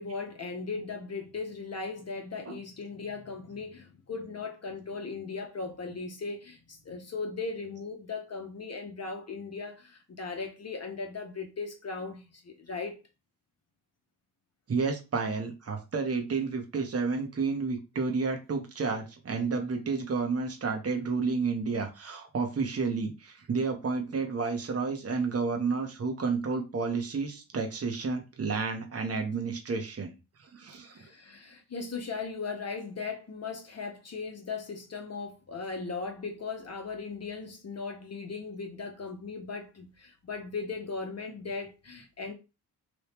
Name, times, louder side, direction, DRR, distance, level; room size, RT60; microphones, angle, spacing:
voice 1, 0.0-13.0 30.8-42.3, left 4 dB, 40° left, 0.9 m, -38 dB
voice 2, 14.7-30.1 30.4-30.9, right 4 dB, 35° right, 1.1 m, -31 dB
3.0 x 2.7 x 3.5 m
supercardioid pair, 55°, 41 cm